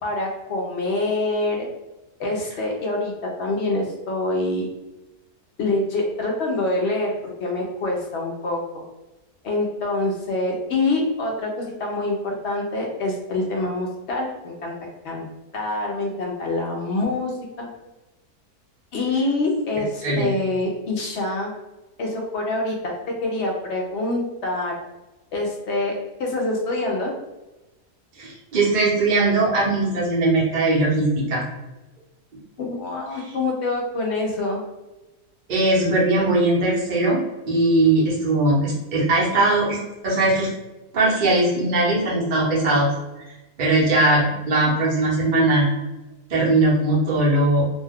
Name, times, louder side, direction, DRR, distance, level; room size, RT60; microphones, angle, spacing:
voice 1, 0.0-1.7 2.2-3.1 3.4-4.7 5.6-7.1 7.4-8.6 9.4-14.7 15.0-17.7 18.9-21.5 22.0-22.9 23.2-24.7 25.3-25.9 26.2-27.1 32.6-34.6, left 2 dB, 65° left, 0 dB, 0.7 m, -25 dB
voice 2, 20.0-20.3 28.2-31.4 35.5-39.8 40.0-40.5 40.9-42.9 43.6-45.7 46.3-47.6, right 2 dB, 45° right, -5 dB, 0.7 m, -20 dB
2.7 x 2.2 x 3.4 m, 1.1 s
omnidirectional pair, 1.7 m